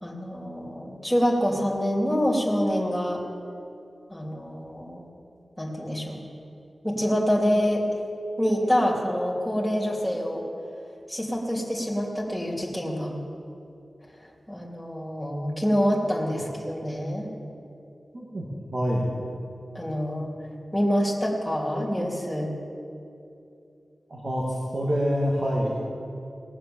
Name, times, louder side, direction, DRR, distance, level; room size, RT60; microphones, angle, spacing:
voice 1, 0.0-3.2 4.1-5.0 5.6-6.2 6.8-7.8 8.4-10.4 11.1-13.1 14.5-17.3 19.7-20.3 20.7-22.5, equal, ahead, -3 dB, 3.0 m, -26 dB
voice 2, 18.1-19.1 24.1-25.8, equal, 60° right, -5 dB, 2.3 m, -26 dB
19.0 x 7.3 x 7.1 m, 2.7 s
cardioid pair, 55°, 0 cm